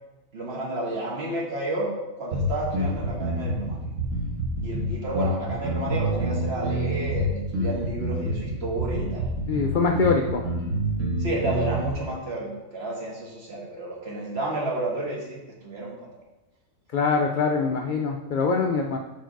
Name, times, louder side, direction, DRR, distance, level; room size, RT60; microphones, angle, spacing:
voice 1, 0.3-1.9 2.2-3.8 4.6-9.3 11.2-16.0, right 2 dB, 50° right, -4 dB, 1.6 m, -31 dB
sound 1, 2.3-11.9, right 1 dB, 70° right, 1.5 m, -27 dB
voice 2, 9.5-10.4 16.9-19.0, left 4 dB, 75° left, 2 dB, 0.4 m, -23 dB
4.7 x 4.6 x 4.5 m, 1.0 s
omnidirectional pair, 1.4 m